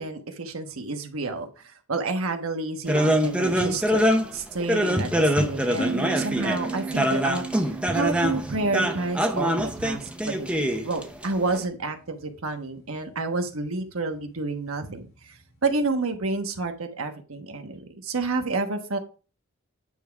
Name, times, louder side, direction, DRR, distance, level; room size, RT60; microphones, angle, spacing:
voice 1, 0.0-4.0 4.3-15.3 15.6-19.0, right 3 dB, 80° right, 5 dB, 1.2 m, -29 dB
sound 1, 2.9-11.6, equal, 5° right, 0.7 m, -24 dB
sound 2, 5.8-11.1, right 4 dB, 75° left, 2.2 m, -36 dB
9.2 x 3.7 x 4.6 m, 0.36 s
head